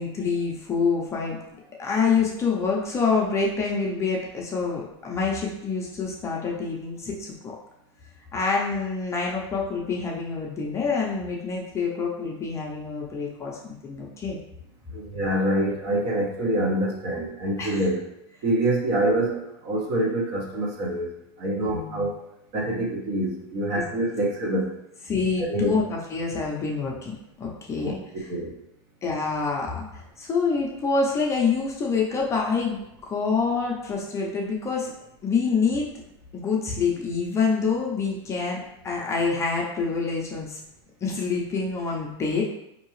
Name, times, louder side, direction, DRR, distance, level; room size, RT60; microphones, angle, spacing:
voice 1, 0.0-1.4 1.8-7.5 8.3-14.4 17.6-17.8 18.9-19.0 21.6-22.0 23.7-23.8 25.1-28.3 29.0-32.8 33.1-34.9 35.2-35.9 36.3-40.6 41.0-42.4, left 4 dB, 20° left, -2 dB, 0.6 m, -26 dB
voice 2, 14.9-18.0 18.4-21.1 21.4-22.1 22.5-24.7 25.4-25.8 27.8-28.0 28.3-28.5, right 1 dB, 50° right, -2 dB, 1.1 m, -26 dB
4.5 x 2.7 x 3.1 m, 0.84 s
supercardioid pair, 145°, 14 cm